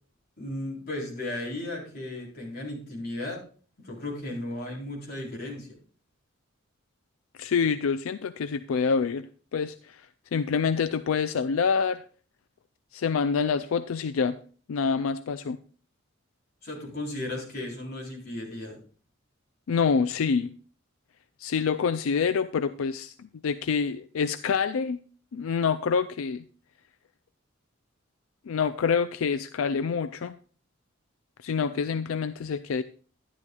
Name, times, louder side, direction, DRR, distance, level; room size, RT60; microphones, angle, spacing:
voice 1, 0.4-3.4 3.8-5.7 16.6-18.8, left 1 dB, 50° left, -3 dB, 4.0 m, -35 dB
voice 2, 7.4-9.3 9.5-12.0 12.9-14.4 14.7-15.6 19.7-20.5 21.4-25.0 25.3-26.4 28.5-30.3 31.4-32.8, left 5 dB, 85° left, 12 dB, 0.4 m, -26 dB
11.5 x 11.0 x 2.3 m, 0.41 s
head